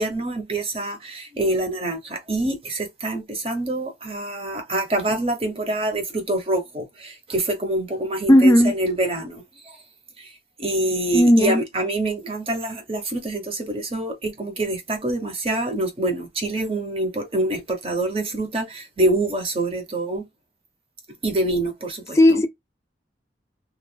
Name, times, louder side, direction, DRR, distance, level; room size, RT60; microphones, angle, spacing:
voice 1, 0.0-9.8 10.2-10.3 10.6-20.3 21.2-22.4, right 2 dB, 30° right, 0.8 m, -26 dB
voice 2, 8.3-8.7 11.1-11.6 22.2-22.5, left 1 dB, 15° left, 0.4 m, -14 dB
2.9 x 2.3 x 2.2 m
head